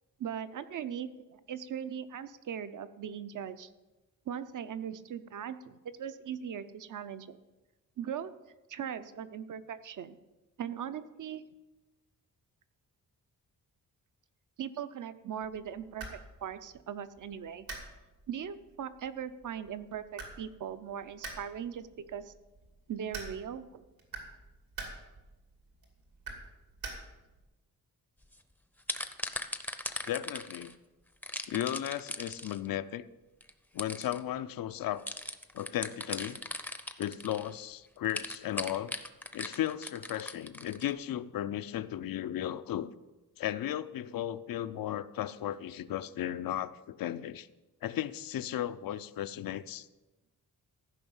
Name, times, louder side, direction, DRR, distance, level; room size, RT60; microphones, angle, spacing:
voice 1, 0.2-3.7 4.3-7.4 8.0-8.3 8.7-10.2 10.6-11.4 14.6-17.7 18.3-22.3 22.9-23.8, right 8 dB, 60° right, 12 dB, 0.7 m, -39 dB
sound 1, 15.4-27.4, right 3 dB, 85° right, 2.7 m, -48 dB
sound 2, 28.2-28.4 28.8-30.7 31.2-32.7 33.4-33.5 33.8-34.2 35.1-37.5 38.0-40.9, left 1 dB, 5° left, 0.6 m, -38 dB
voice 2, 30.1-30.7 31.5-33.0 33.7-35.0 35.5-36.4 37.0-38.9 39.3-42.9 43.4-47.5 47.8-49.9, left 11 dB, 75° left, 14 dB, 0.6 m, -35 dB
14.5 x 5.5 x 7.1 m, 1.1 s
wide cardioid pair, 135°, 35 cm